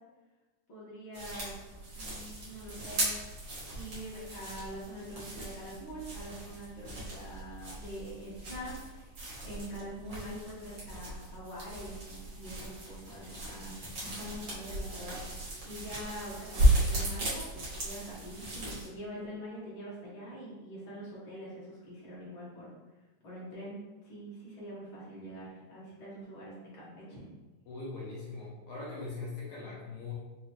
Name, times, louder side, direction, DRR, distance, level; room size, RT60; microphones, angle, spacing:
voice 1, 0.7-1.5 1.9-3.1 3.7-9.1 9.4-13.8 14.0-22.7 23.2-23.8 24.0-27.2, equal, 55° left, -7 dB, 1.5 m, -44 dB
sound 1, 1.1-18.9, right 1 dB, 75° right, 1.0 m, -35 dB
voice 2, 27.7-30.1, left 3 dB, 75° left, -6 dB, 1.9 m, -41 dB
5.4 x 2.6 x 3.0 m, 1.2 s
omnidirectional pair, 4.0 m